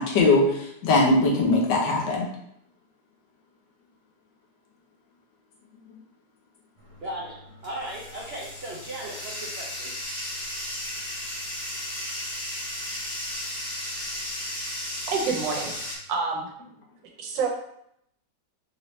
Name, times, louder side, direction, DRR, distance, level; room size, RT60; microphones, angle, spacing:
voice 1, 0.0-2.3, left 2 dB, 75° left, -1 dB, 1.5 m, -21 dB
Bathtub (filling or washing), 6.8-16.0, left 1 dB, 25° left, 1.0 m, -35 dB
voice 2, 7.0-7.3 7.6-9.9, right 1 dB, 60° right, -4 dB, 0.6 m, -36 dB
voice 3, 15.1-16.5 17.2-17.5, right 5 dB, 80° right, 0 dB, 1.5 m, -28 dB
4.6 x 2.8 x 3.1 m, 0.73 s
omnidirectional pair, 1.9 m